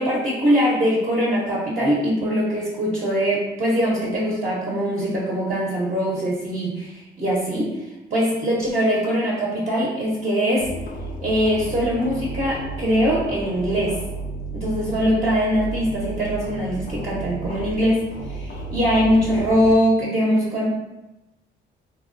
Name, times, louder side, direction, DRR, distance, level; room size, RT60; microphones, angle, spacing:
voice 1, 0.0-7.8 8.1-10.7 11.2-14.0 14.5-20.7, equal, 35° right, -6 dB, 0.8 m, -22 dB
sound 1, 10.6-19.8, right 2 dB, 45° left, 0.4 m, -33 dB
3.4 x 2.1 x 2.5 m, 0.98 s
cardioid pair, 90°, 20 cm